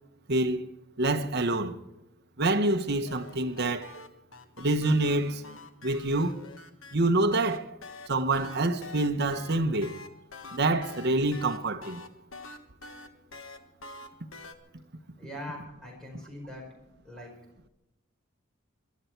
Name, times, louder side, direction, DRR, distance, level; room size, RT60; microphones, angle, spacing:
voice 1, 0.3-0.7 1.0-1.7 2.4-3.9 4.6-5.4 5.8-6.4 6.9-7.7 8.1-9.9 10.5-12.0, right 2 dB, 50° right, 1.1 m, -26 dB
sound 1, 2.9-6.9 7.3-14.5, left 3 dB, 65° left, 1.5 m, -46 dB
voice 2, 15.2-16.7 17.0-17.3, left 1 dB, 5° left, 5.3 m, -42 dB
22.5 x 12.5 x 4.6 m
head